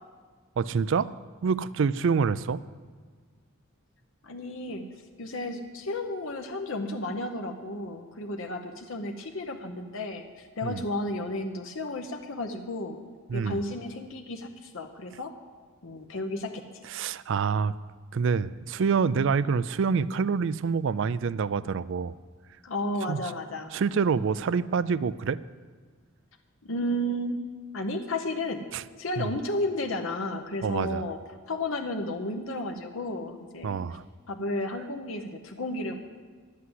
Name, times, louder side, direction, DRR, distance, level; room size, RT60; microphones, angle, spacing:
voice 1, 0.6-1.1 1.4-2.6 10.6-10.8 13.3-13.6 16.8-17.7 18.1-22.2 23.1-23.2 23.7-25.4 28.7-28.8 29.2-29.3 30.6-31.0 33.6-34.0, right 5 dB, 60° right, 18 dB, 0.4 m, -26 dB
voice 2, 4.2-4.9 5.2-13.1 13.3-15.3 15.8-16.6 22.6-23.7 26.6-27.4 27.7-28.6 29.0-31.2 31.5-33.8 34.3-36.0, left 1 dB, 65° left, 4 dB, 0.8 m, -33 dB
11.0 x 8.4 x 7.7 m, 1.5 s
head